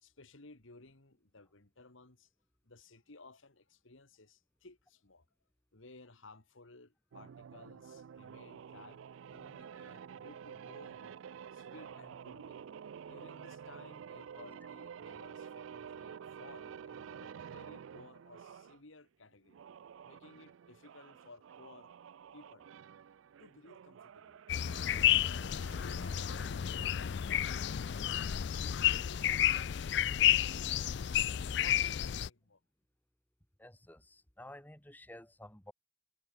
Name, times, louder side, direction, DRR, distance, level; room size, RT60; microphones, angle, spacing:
voice 1, 0.0-2.3 2.6-5.3 5.7-9.0 9.3-11.2 11.5-19.6 20.0-21.9 22.3-22.7 23.4-24.4 25.6-32.6, left 3 dB, 75° left, 2.0 m, -57 dB
sound 1, 7.1-18.8 19.5-26.6, right 7 dB, 75° right, 0.3 m, -50 dB
sound 2, 24.5-32.3, left 11 dB, 55° left, 0.4 m, -31 dB
voice 2, 33.6-35.7, left 1 dB, 10° left, 1.6 m, -52 dB
head